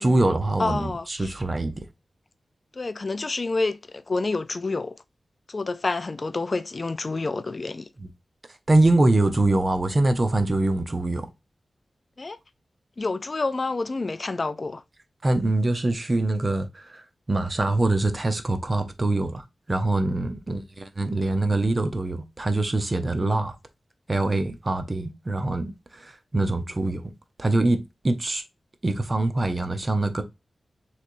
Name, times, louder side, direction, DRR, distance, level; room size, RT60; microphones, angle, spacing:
voice 1, 0.0-1.8 8.0-8.1 8.7-11.3 15.2-23.5 24.1-27.0 27.4-28.4 28.8-30.2, right 2 dB, 30° right, 0.7 m, -24 dB
voice 2, 0.6-1.3 2.7-5.0 5.5-7.9 12.2-12.4 13.0-14.8 23.1-23.4, left 3 dB, 40° left, 0.4 m, -28 dB
6.3 x 3.2 x 2.6 m
wide cardioid pair, 120°, 0 cm